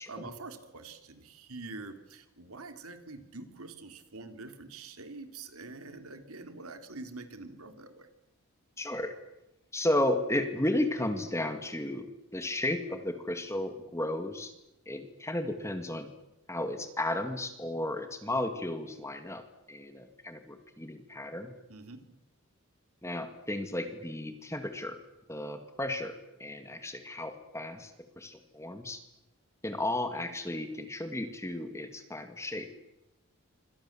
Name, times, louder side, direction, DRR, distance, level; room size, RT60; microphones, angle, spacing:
voice 1, 0.0-8.1 21.7-22.0, right 3 dB, 75° right, 7 dB, 3.2 m, -45 dB
voice 2, 8.8-9.1 9.7-12.1 12.3-14.5 14.9-16.1 16.5-21.5 23.0-25.0 25.3-29.0 29.6-32.7, left 1 dB, 10° left, 7 dB, 2.0 m, -34 dB
27.5 x 25.5 x 7.4 m, 0.91 s
head